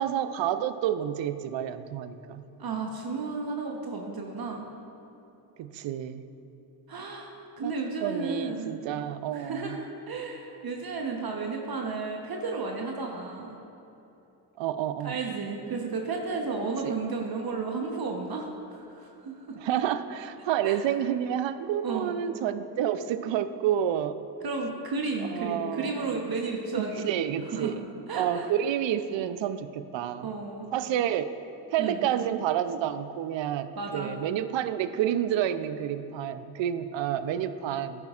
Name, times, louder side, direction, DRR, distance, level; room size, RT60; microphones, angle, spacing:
voice 1, 0.0-2.4 5.6-6.2 7.6-7.7 8.0-9.8 14.6-15.2 16.8-16.9 19.6-24.2 25.3-26.2 26.8-27.8 28.1-30.3 30.7-31.4 31.7-38.1, right 10 dB, 65° right, 12 dB, 0.6 m, -29 dB
voice 2, 2.6-4.7 6.9-8.7 9.3-13.6 15.0-19.6 20.6-20.8 21.8-22.1 24.4-27.1 27.5-27.7 28.1-28.5 30.2-30.7 31.8-32.1 33.8-34.2, right 4 dB, 45° right, 1 dB, 1.1 m, -33 dB
10.5 x 9.8 x 2.5 m, 3.0 s
supercardioid pair, 50°, 50 cm